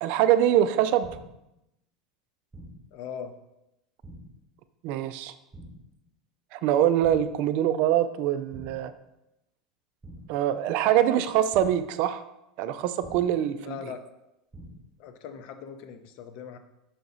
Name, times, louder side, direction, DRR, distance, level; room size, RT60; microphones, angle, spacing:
voice 1, 0.0-1.1 4.8-5.3 6.5-8.9 10.3-12.2 12.6-13.7, right 11 dB, 50° right, 12 dB, 0.4 m, -24 dB
sound 1, 1.0-1.5 2.5-3.0 4.0-4.5 5.5-6.0 7.0-7.5 8.5-9.0 10.0-10.5 11.5-12.0 13.0-13.5 14.5-15.0, right 1 dB, 15° right, 1.1 m, -47 dB
voice 2, 2.9-3.3 13.6-14.0 15.0-16.6, left 8 dB, 50° left, 8 dB, 0.7 m, -40 dB
5.8 x 4.7 x 4.0 m, 0.89 s
figure-of-eight pair, 80°, 3 cm